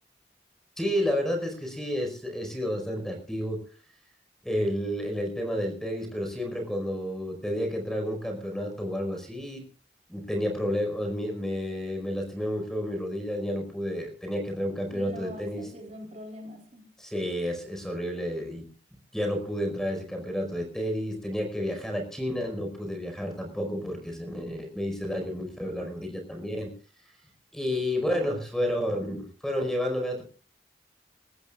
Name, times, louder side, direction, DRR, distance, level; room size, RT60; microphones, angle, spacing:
voice 1, 0.8-3.6 4.4-9.6 10.1-15.7 17.0-18.7 19.1-26.7 27.5-30.2, equal, 5° left, 4 dB, 4.9 m, -31 dB
voice 2, 14.9-16.9, equal, 40° right, 2 dB, 3.9 m, -43 dB
27.5 x 14.5 x 2.5 m, 0.38 s
head